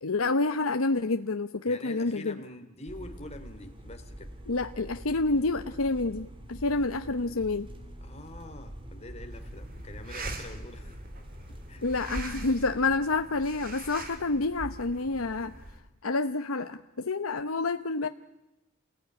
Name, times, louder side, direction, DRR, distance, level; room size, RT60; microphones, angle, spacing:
voice 1, 0.0-2.4 4.5-7.7 11.8-15.5 16.0-18.1, left 3 dB, 90° left, 8 dB, 0.9 m, -28 dB
voice 2, 1.6-4.3 8.0-11.0 11.5-11.8, left 2 dB, 30° left, 7 dB, 3.1 m, -45 dB
sound 1, 2.9-13.0, equal, 25° right, 3.3 m, -45 dB
sound 2, 9.3-15.8, right 2 dB, 45° right, 3.5 m, -42 dB
29.0 x 19.5 x 9.8 m, 0.97 s
head